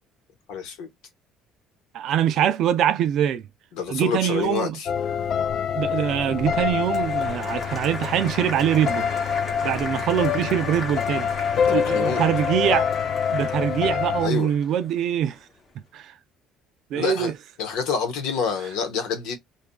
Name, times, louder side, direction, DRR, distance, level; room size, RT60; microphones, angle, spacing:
voice 1, 0.5-0.9 3.7-4.9 11.7-12.2 14.2-14.5 16.9-19.4, left 6 dB, 75° left, 1.1 m, -27 dB
voice 2, 1.9-3.4 3.9-4.8 5.7-9.1 9.6-11.3 11.7-12.9 13.3-15.4 15.9-16.1 16.9-17.3, right 10 dB, 50° right, 0.4 m, -23 dB
sound 1, 4.9-14.3, left 7 dB, 40° left, 0.3 m, -26 dB
Applause, 6.4-15.5, left 2 dB, 25° left, 0.8 m, -36 dB
2.6 x 2.4 x 2.2 m
cardioid pair, 165°, 0 cm